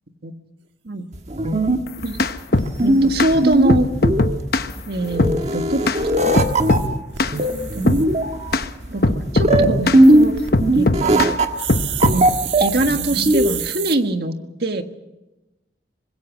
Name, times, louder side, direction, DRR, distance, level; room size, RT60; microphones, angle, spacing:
sound 1, 1.1-13.7, right 1 dB, 35° right, 1.5 m, -19 dB
sound 2, 1.4-1.5 1.9-2.0 2.2-2.3 2.5-3.6 5.9-8.0 8.5-8.7 10.1-10.5 11.6-14.0, right 11 dB, 75° right, 1.5 m, -31 dB
sound 3, 1.9-2.7 3.2-3.3 3.7-4.7 5.2-5.4 5.9-6.0 6.4-6.9 7.2-7.4 7.9-8.1 8.5-8.7 9.0-10.0 10.5-11.3 11.7-12.2, left 2 dB, 55° left, 1.0 m, -19 dB
voice 1, 2.8-3.9 4.9-5.9 6.2-6.4 7.4-8.0 8.9-10.4 10.7-11.4 12.6-14.4 14.6-14.8, right 1 dB, 55° right, 6 dB, 1.7 m, -23 dB
25.0 x 21.0 x 6.2 m, 0.99 s
head